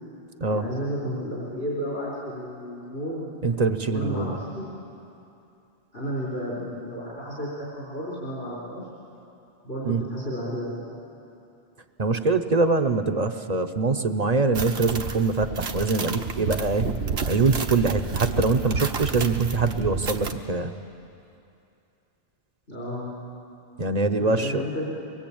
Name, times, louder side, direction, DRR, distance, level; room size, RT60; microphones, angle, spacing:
voice 1, 0.5-3.3 3.9-4.8 5.9-8.9 9.6-11.0 22.7-23.1 24.2-24.9, equal, 75° left, -6 dB, 4.7 m, -32 dB
voice 2, 3.4-4.4 9.9-10.0 12.0-16.9 17.3-20.8 23.8-24.6, right 3 dB, 40° right, 8 dB, 0.9 m, -23 dB
sound 1, 14.5-20.3, right 4 dB, 75° right, 1.4 m, -30 dB
23.5 x 21.0 x 8.7 m, 2.7 s
omnidirectional pair, 1.1 m